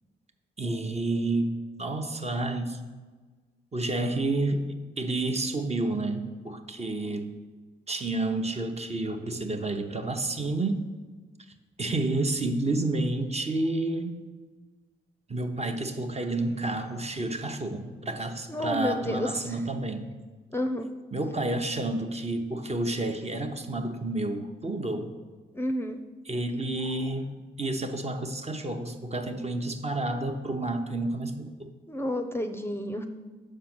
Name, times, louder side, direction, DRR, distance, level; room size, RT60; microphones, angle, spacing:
voice 1, 0.6-1.5 1.8-2.8 3.7-4.6 5.0-7.3 7.9-10.8 11.8-14.2 15.3-20.1 21.1-25.1 26.3-31.7, right 2 dB, 30° right, 5 dB, 0.9 m, -30 dB
voice 2, 18.5-19.3 20.5-20.9 25.5-26.0 31.9-33.0, left 1 dB, 10° left, 6 dB, 0.6 m, -30 dB
6.4 x 4.6 x 6.1 m, 1.4 s
supercardioid pair, 50°, 20 cm